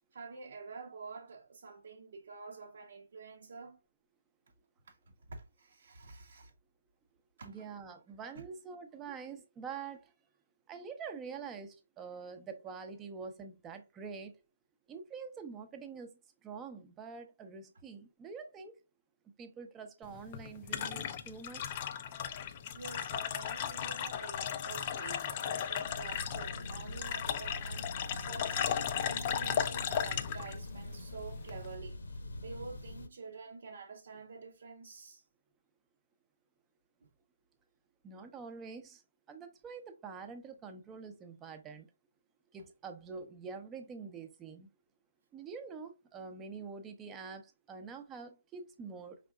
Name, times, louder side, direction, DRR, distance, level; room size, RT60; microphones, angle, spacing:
voice 1, 0.1-3.8 4.8-5.0 5.3-6.5 7.4-7.7 22.7-35.2 37.0-37.1, right 4 dB, 55° right, 0.7 m, -48 dB
voice 2, 7.4-10.1 10.7-14.4 14.9-18.8 19.4-21.8 38.0-39.0 39.3-41.9 42.5-44.7 45.3-49.2, right 5 dB, 15° right, 0.7 m, -46 dB
sound 1, 20.0-31.8, left 9 dB, 30° left, 0.4 m, -36 dB
sound 2, 25.8-33.1, left 1 dB, 70° left, 0.9 m, -44 dB
5.0 x 3.5 x 2.3 m
figure-of-eight pair, 150°, 0 cm